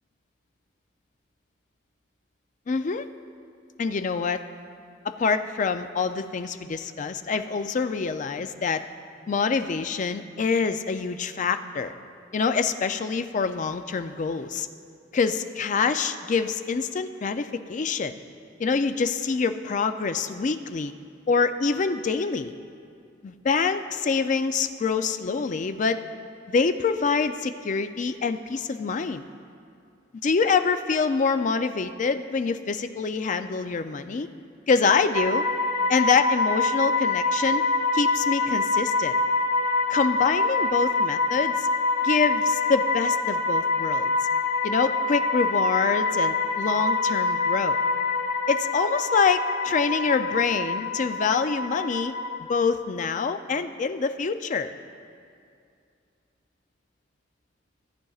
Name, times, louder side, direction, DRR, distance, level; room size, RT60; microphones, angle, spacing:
voice 1, 2.7-3.1 3.8-4.4 5.0-8.9 9.3-11.9 12.3-14.7 15.1-18.2 18.6-20.9 21.3-22.5 23.2-26.0 26.5-29.2 30.2-34.3 34.7-35.5 35.9-37.7 37.9-39.2 39.9-41.7 42.0-44.1 44.6-47.8 48.5-52.1 52.5-54.7, left 5 dB, 40° left, 9 dB, 0.4 m, -25 dB
sound 1, 35.1-52.4, left 3 dB, 25° right, 1.0 m, -25 dB
17.0 x 10.0 x 2.4 m, 2.4 s
head